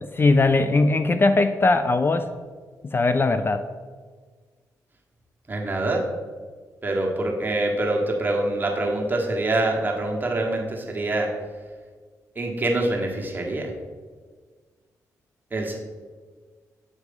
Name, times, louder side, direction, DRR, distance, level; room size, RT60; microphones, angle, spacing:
voice 1, 0.0-2.3 2.8-3.7, left 3 dB, 35° left, 9 dB, 0.4 m, -20 dB
voice 2, 5.5-6.0 6.8-11.3 12.3-13.7 15.5-15.8, right 2 dB, 30° right, 0 dB, 1.4 m, -25 dB
7.8 x 3.0 x 5.4 m, 1.5 s
supercardioid pair, 55°, 7 cm